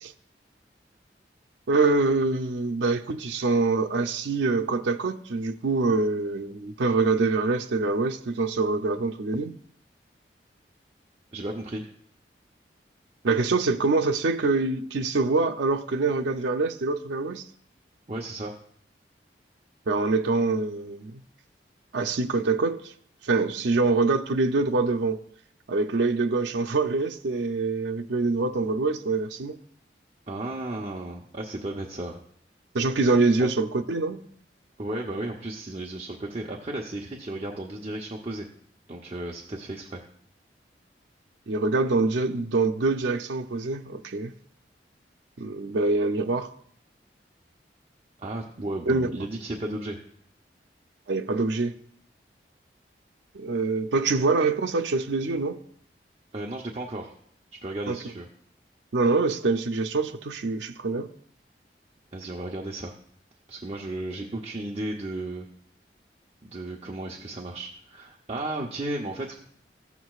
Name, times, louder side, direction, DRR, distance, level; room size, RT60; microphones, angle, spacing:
voice 1, 1.7-9.5 13.2-17.5 19.9-21.2 21.9-22.9 23.2-25.2 25.7-29.6 32.7-34.2 41.5-44.3 45.4-46.5 48.9-49.2 51.1-51.7 53.3-55.6 57.9-58.0 58.9-61.1, right 3 dB, 90° right, 0.5 m, -25 dB
voice 2, 11.3-11.9 18.1-18.5 30.3-32.2 33.4-33.5 34.8-38.5 38.9-40.0 48.2-50.0 56.3-57.1 57.6-58.3 62.1-62.9 63.5-65.5 66.4-69.4, right 1 dB, 35° right, 0.7 m, -34 dB
14.5 x 8.1 x 2.4 m
head